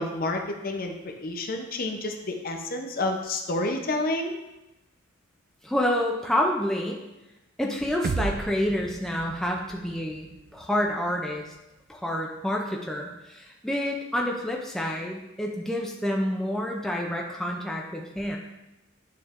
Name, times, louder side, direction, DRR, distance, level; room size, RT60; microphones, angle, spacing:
voice 1, 0.0-4.4, left 2 dB, 50° left, 3 dB, 0.7 m, -29 dB
voice 2, 5.6-7.0 7.6-10.3 10.5-11.5 11.9-18.4, left 1 dB, ahead, -1 dB, 0.6 m, -28 dB
sound 1, 8.0-12.0, right 4 dB, 45° right, 0.3 m, -36 dB
9.4 x 3.3 x 3.6 m, 0.96 s
head